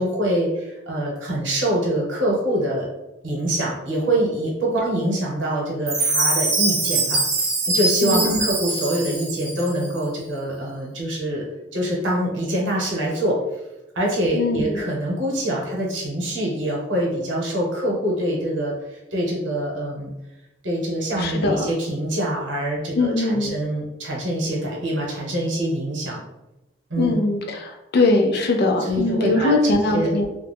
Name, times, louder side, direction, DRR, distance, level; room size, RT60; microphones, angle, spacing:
voice 1, 0.0-2.9 3.2-11.4 11.7-13.4 13.9-20.1 20.6-26.2 26.9-27.2 28.8-30.1, right 1 dB, 85° right, -2 dB, 0.9 m, -25 dB
Chime, 5.9-9.9, right 3 dB, 40° right, 0.8 m, -23 dB
voice 2, 8.0-8.4 14.3-14.6 21.2-21.7 22.9-23.6 27.0-30.3, left 2 dB, 60° left, 3 dB, 0.4 m, -21 dB
2.3 x 2.1 x 3.3 m, 0.98 s
head